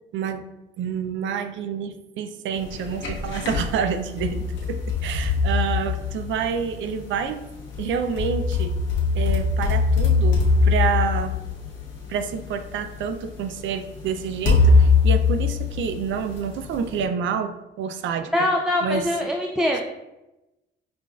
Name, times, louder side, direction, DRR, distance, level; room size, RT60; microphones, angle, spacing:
voice 1, 0.1-0.4 0.8-7.4 7.8-8.7 9.1-11.3 12.1-18.3 18.8-19.1, right 7 dB, 75° right, 8 dB, 0.4 m, -28 dB
sound 1, 2.7-3.7 4.2-6.6 7.7-12.2 13.0-13.1 14.5-16.4, left 4 dB, 70° left, 0.9 m, -21 dB
voice 2, 18.3-19.8, left 1 dB, 5° right, 0 dB, 0.3 m, -23 dB
5.8 x 2.4 x 2.3 m, 0.97 s
cardioid pair, 90°, 20 cm